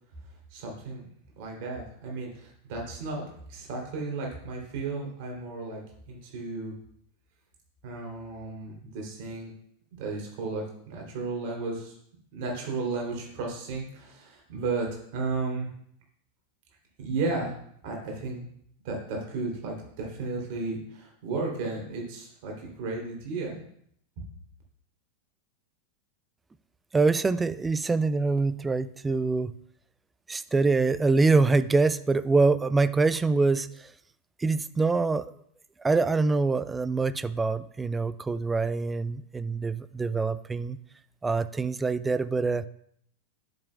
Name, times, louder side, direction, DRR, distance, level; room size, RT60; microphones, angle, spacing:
voice 1, 0.5-1.0 1.4-3.2 3.5-5.8 6.1-6.7 7.8-9.5 10.0-11.9 12.3-15.7 17.0-17.5 17.8-18.5 18.8-23.6, right 3 dB, 45° right, -1 dB, 3.0 m, -34 dB
voice 2, 26.9-29.5 30.3-33.9 34.4-35.3 35.8-40.8 41.2-42.7, right 3 dB, 10° right, 14 dB, 0.4 m, -25 dB
10.5 x 7.8 x 2.3 m, 0.68 s
figure-of-eight pair, 90°, 0 cm